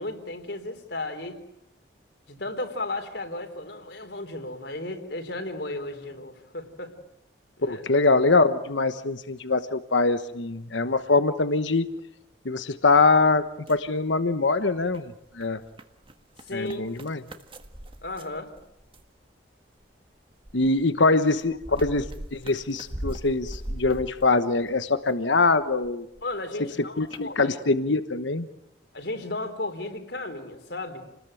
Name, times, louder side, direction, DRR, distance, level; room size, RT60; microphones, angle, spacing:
voice 1, 0.0-1.4 2.3-6.9 7.6-7.8 16.5-16.9 18.0-18.5 26.2-27.6 28.9-31.0, left 2 dB, 65° left, 6 dB, 3.9 m, -34 dB
voice 2, 7.6-11.9 12.4-13.4 13.7-15.1 15.4-15.6 16.5-17.2 20.5-22.0 22.3-26.1 27.0-28.5, left 3 dB, 80° left, 11 dB, 1.2 m, -23 dB
sound 1, 13.5-14.5 14.8-19.2 19.8-25.1 25.4-26.3 26.7-26.8 27.1-27.2, right 1 dB, 25° right, 1.6 m, -40 dB
29.5 x 20.5 x 9.1 m, 0.80 s
head